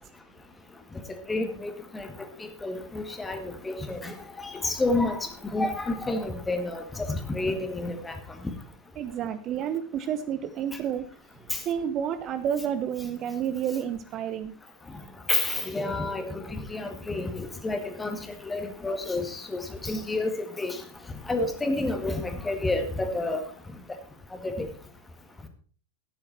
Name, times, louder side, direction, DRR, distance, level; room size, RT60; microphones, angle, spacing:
voice 1, 1.3-2.1 2.4-8.2 11.5-11.6 15.3-18.2 18.4-20.3 20.6-20.8 21.3-23.4 24.4-24.7, left 2 dB, 10° left, 7 dB, 1.8 m, -29 dB
voice 2, 9.0-11.0 11.6-14.6, right 9 dB, 35° right, 11 dB, 0.8 m, -30 dB
12.5 x 9.8 x 4.3 m, 0.43 s
figure-of-eight pair, 90°, 0 cm